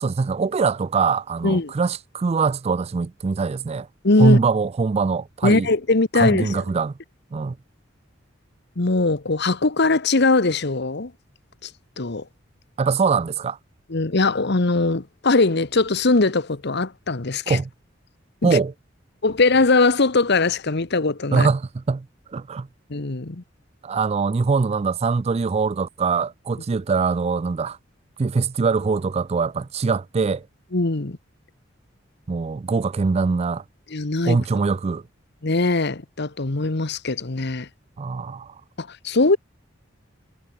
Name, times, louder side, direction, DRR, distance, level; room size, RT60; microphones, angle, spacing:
voice 1, 0.0-3.9 4.2-5.7 6.1-6.9 7.3-7.6 12.8-13.6 17.5-17.7 18.4-18.7 21.3-22.1 22.3-22.7 23.8-27.8 28.2-30.5 32.3-33.6 34.2-35.0 38.0-38.5, right 4 dB, 30° right, 0.4 m, -22 dB
voice 2, 4.0-4.4 5.4-6.6 8.8-11.1 11.6-11.7 12.0-12.2 13.9-17.6 18.4-18.6 19.2-21.5 22.9-23.4 30.7-31.2 33.9-34.4 35.4-37.7 38.8-39.4, left 3 dB, 60° left, 1.3 m, -21 dB
head